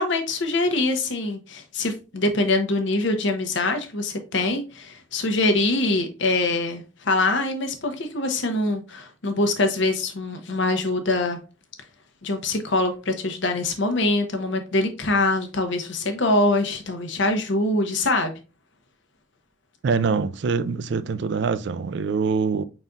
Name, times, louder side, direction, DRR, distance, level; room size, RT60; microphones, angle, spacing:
voice 1, 0.0-11.4 12.2-18.3, left 2 dB, 65° left, 0.8 m, -24 dB
voice 2, 19.8-22.6, right 5 dB, 60° right, 0.4 m, -24 dB
5.2 x 4.0 x 2.3 m
head